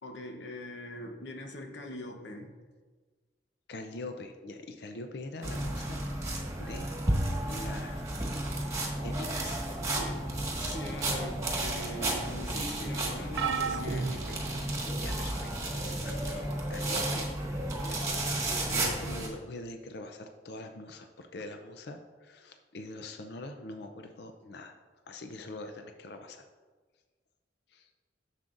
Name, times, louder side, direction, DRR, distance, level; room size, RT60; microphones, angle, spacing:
voice 1, 0.0-2.5 9.8-10.3 10.5-14.5, left 1 dB, 85° left, 4 dB, 0.9 m, -42 dB
voice 2, 3.7-6.0 6.3-6.9 7.5-8.0 9.0-9.6 14.9-15.8 16.0-17.3 17.8-24.7 25.1-26.4 27.7-27.9, left 2 dB, 65° left, 6 dB, 0.5 m, -43 dB
sound 1, 5.4-19.3, right 1 dB, 20° right, 1.6 m, -33 dB
sound 2, 13.4-15.2 15.9-16.2 17.5-17.6, right 5 dB, 70° right, 0.4 m, -35 dB
11.5 x 7.3 x 2.5 m, 1.4 s
head